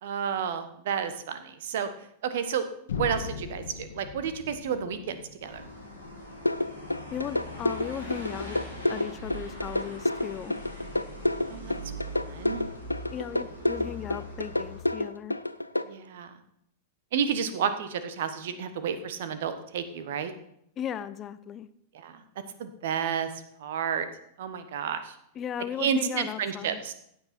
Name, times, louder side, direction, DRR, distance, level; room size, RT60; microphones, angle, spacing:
voice 1, 0.0-1.9 2.2-2.7 2.9-5.7 11.5-11.7 12.1-12.6 15.8-16.3 17.1-20.3 21.9-22.2 22.6-23.3 23.6-24.1 24.4-25.2 25.8-26.9, right 7 dB, 55° right, 11 dB, 1.2 m, -31 dB
sound 1, 2.9-6.8, left 6 dB, 65° left, 1.3 m, -39 dB
sound 2, 5.4-14.8, equal, 90° right, 5.5 m, -41 dB
sound 3, 6.5-15.8, left 1 dB, 85° left, 0.5 m, -28 dB
voice 2, 7.1-8.6 8.9-10.5 13.1-15.3 20.8-21.7 25.4-26.8, left 9 dB, 30° left, 14 dB, 0.6 m, -36 dB
15.5 x 8.6 x 4.4 m, 0.73 s
figure-of-eight pair, 95°, 0 cm